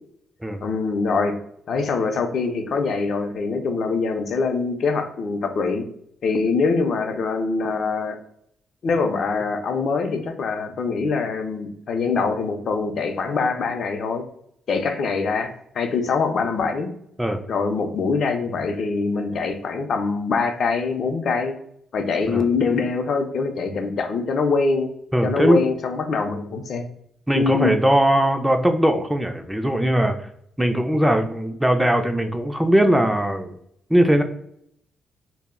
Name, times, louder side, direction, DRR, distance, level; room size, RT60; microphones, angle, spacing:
voice 1, 0.6-1.4 1.7-5.8 6.2-8.2 8.8-14.2 14.7-16.9 17.5-21.5 21.9-24.9 25.2-26.8 27.3-27.7, left 4 dB, 60° left, 6 dB, 0.4 m, -24 dB
voice 2, 25.1-25.7 27.3-30.3 30.6-33.6 33.9-34.2, right 1 dB, 5° right, 5 dB, 0.3 m, -20 dB
2.1 x 2.0 x 3.5 m, 0.72 s
cardioid pair, 80°, 0 cm